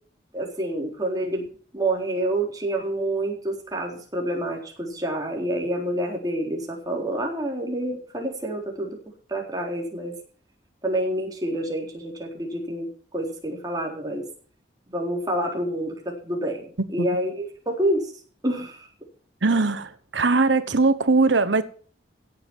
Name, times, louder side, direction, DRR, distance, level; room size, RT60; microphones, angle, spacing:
voice 1, 0.3-1.5 1.7-9.0 9.3-10.1 10.8-12.9 13.1-14.2 14.9-18.1 18.4-18.9, right 1 dB, 20° right, 3.9 m, -28 dB
voice 2, 19.4-21.6, right 3 dB, 80° right, 1.1 m, -20 dB
16.5 x 7.9 x 6.2 m
head